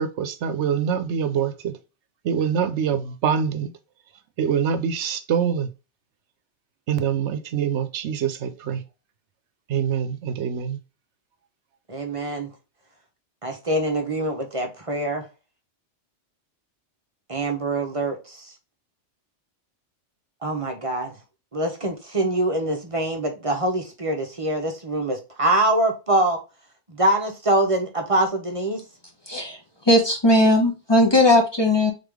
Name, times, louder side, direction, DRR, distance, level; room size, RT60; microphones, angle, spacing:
voice 1, 0.0-1.7 2.2-3.7 4.4-5.7 6.9-8.8 9.7-10.8, right 7 dB, 75° right, 0.9 m, -25 dB
voice 2, 11.9-12.5 13.4-15.2 17.3-18.5 20.4-21.1 21.5-26.4 26.9-28.8, right 1 dB, 35° right, 0.8 m, -24 dB
voice 3, 29.3-29.6 29.9-31.9, left 1 dB, 25° left, 1.0 m, -18 dB
3.8 x 3.6 x 3.4 m
omnidirectional pair, 1.2 m